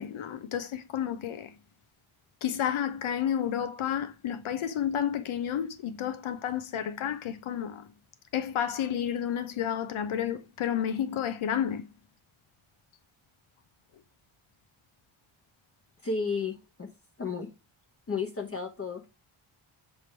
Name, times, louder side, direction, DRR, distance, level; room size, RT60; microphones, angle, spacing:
voice 1, 0.0-1.5 2.4-7.9 8.3-11.8, left 9 dB, 75° left, 0.9 m, -31 dB
voice 2, 16.0-16.9 17.2-17.5 18.1-19.0, left 4 dB, 30° left, 0.9 m, -32 dB
6.8 x 3.5 x 4.5 m
wide cardioid pair, 155°, 50 cm